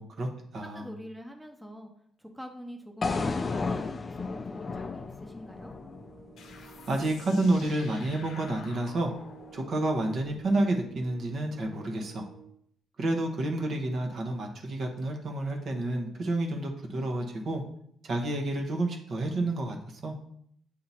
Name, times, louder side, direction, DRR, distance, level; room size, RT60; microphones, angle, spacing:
voice 1, 0.0-0.9 6.9-9.1 9.5-12.2 13.0-17.6 18.0-20.1, right 2 dB, 55° right, 3 dB, 1.1 m, -29 dB
voice 2, 0.6-1.9 2.2-5.7, equal, 5° right, 3 dB, 0.8 m, -45 dB
sound 1, 3.0-7.1, left 3 dB, 35° left, 0.4 m, -33 dB
sound 2, 5.5-12.6, right 9 dB, 75° right, 1.7 m, -52 dB
sound 3, 6.4-11.6, left 5 dB, 70° left, 0.8 m, -50 dB
8.5 x 2.8 x 4.2 m, 0.68 s
cardioid pair, 90°, 0 cm